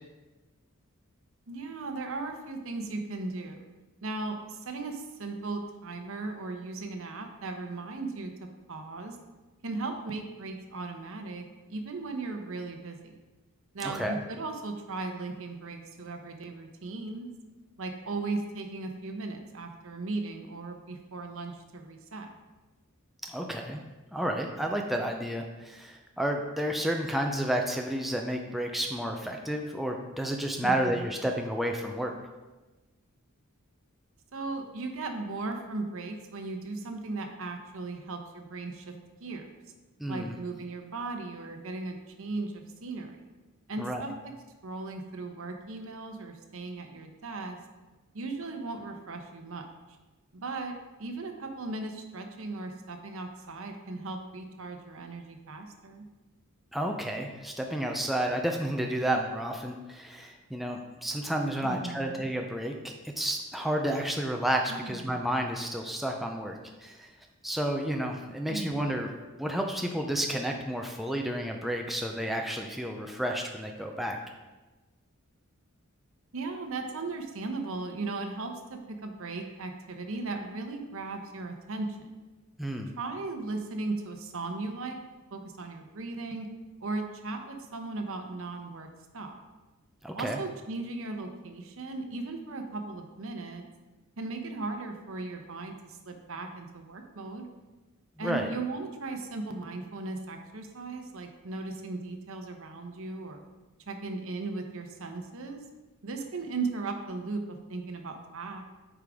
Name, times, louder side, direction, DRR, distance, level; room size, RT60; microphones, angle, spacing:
voice 1, 1.5-3.6 4.0-9.2 9.6-13.2 13.7-17.3 17.8-22.3 30.6-31.1 34.3-38.9 39.2-39.5 40.1-43.2 43.7-44.3 44.6-47.6 48.1-49.7 50.3-56.1 61.6-62.2 64.7-65.2 68.5-68.8 76.3-82.1 83.0-85.0 85.3-86.5 86.8-88.9 89.1-89.4 90.1-93.6 94.2-97.5 98.2-103.4 103.9-105.6 106.0-108.6, right 3 dB, 65° right, 4 dB, 0.8 m, -37 dB
voice 2, 13.8-14.2 23.2-23.8 24.1-32.1 40.0-40.3 43.8-44.0 56.7-67.1 67.4-69.1 69.4-74.2 82.6-82.9 90.0-90.4 98.2-98.5, right 1 dB, ahead, 1 dB, 0.4 m, -31 dB
8.7 x 4.9 x 3.5 m, 1.2 s
head